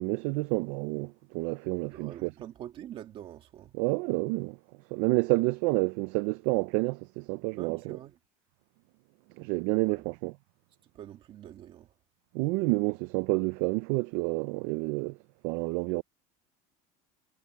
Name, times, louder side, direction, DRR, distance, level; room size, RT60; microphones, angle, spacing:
voice 1, 0.0-2.3 3.7-4.6 4.9-8.0 9.4-10.3 12.3-15.2 15.4-16.0, right 24 dB, 50° right, 0.4 m, -29 dB
voice 2, 1.8-3.7 7.6-8.2 9.9-10.1 10.9-11.9, right 11 dB, 30° right, 2.1 m, -45 dB
cardioid pair, 180°, 17 cm